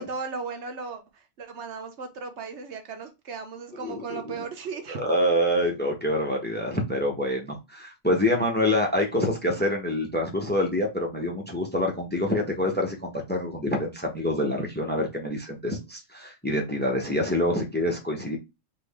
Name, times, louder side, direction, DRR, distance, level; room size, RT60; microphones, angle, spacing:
voice 1, 0.0-5.0, right 5 dB, 55° right, 1.1 m, -36 dB
voice 2, 3.8-4.2 5.0-18.4, left 1 dB, 10° left, 0.9 m, -26 dB
4.1 x 3.2 x 3.5 m
omnidirectional pair, 1.5 m